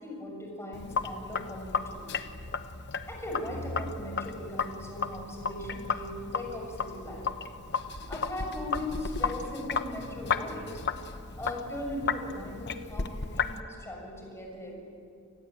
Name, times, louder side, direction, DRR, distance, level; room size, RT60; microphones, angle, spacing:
voice 1, 0.0-2.1 3.1-7.3 8.1-10.7 11.4-14.7, left 1 dB, 15° left, 0 dB, 6.7 m, -39 dB
Sink (filling or washing), 0.7-13.6, left 5 dB, 55° left, 1.1 m, -34 dB
28.5 x 20.5 x 8.9 m, 2.4 s
head